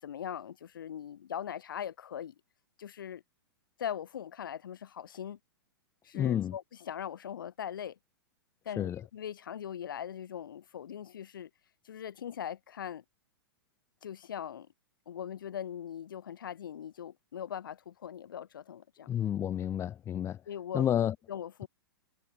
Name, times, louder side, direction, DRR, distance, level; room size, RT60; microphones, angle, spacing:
voice 1, 0.0-2.3 2.8-3.2 3.8-5.4 6.0-8.0 8.7-11.5 11.8-13.0 14.0-14.7 15.1-19.1 20.5-20.8 21.3-21.7, left 9 dB, 60° left, 7.4 m, -40 dB
voice 2, 6.1-6.5 8.8-8.9 19.1-20.4 20.7-21.1, left 10 dB, 20° left, 1.8 m, -30 dB
figure-of-eight pair, 100°, 13 cm